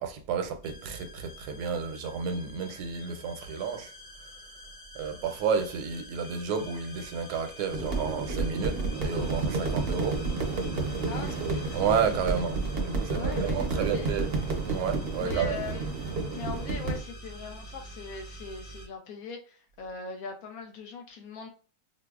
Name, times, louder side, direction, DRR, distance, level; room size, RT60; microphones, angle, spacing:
voice 1, 0.0-3.9 4.9-10.2 11.2-14.3 14.6-15.7, right 6 dB, 80° right, 1.1 m, -31 dB
sound 1, 0.6-18.9, left 1 dB, 40° left, 1.4 m, -46 dB
sound 2, 7.7-17.0, right 3 dB, 55° right, 0.7 m, -30 dB
voice 2, 11.1-12.0 13.1-14.1 15.2-15.9 16.3-21.5, left 5 dB, 70° left, 1.1 m, -41 dB
4.8 x 2.0 x 2.3 m
omnidirectional pair, 1.7 m